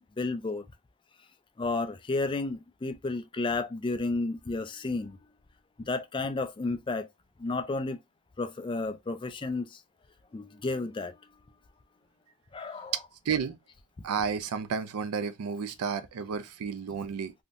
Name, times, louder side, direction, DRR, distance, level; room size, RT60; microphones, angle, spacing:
voice 1, 0.2-0.7 1.6-5.2 5.8-7.1 7.4-8.0 8.4-9.8 10.3-11.2 12.5-12.9, left 3 dB, 20° left, 0.4 m, -32 dB
voice 2, 13.3-13.6 14.0-17.3, right 6 dB, 85° right, 0.4 m, -32 dB
3.5 x 2.7 x 2.5 m
head